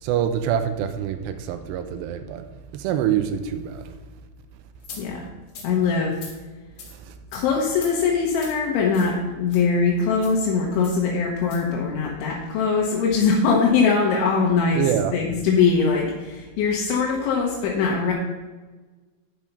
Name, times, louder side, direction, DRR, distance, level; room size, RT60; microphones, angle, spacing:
voice 1, 0.0-2.5 2.7-3.9 6.9-7.2 14.7-15.2, right 9 dB, 85° right, 9 dB, 2.5 m, -25 dB
sound 1, 4.8-5.0 5.5-5.7 6.1-6.3 6.8-6.9 7.3-7.4 7.7-7.9 8.3-8.6 8.9-9.1 9.5-9.6 10.2-10.4 10.8-11.0 11.4-11.6, left 5 dB, 55° left, 3.5 m, -40 dB
voice 2, 5.6-6.2 7.3-14.8 15.1-18.1, left 5 dB, 80° left, -2 dB, 3.4 m, -21 dB
11.0 x 5.8 x 5.3 m, 1.3 s
omnidirectional pair, 5.5 m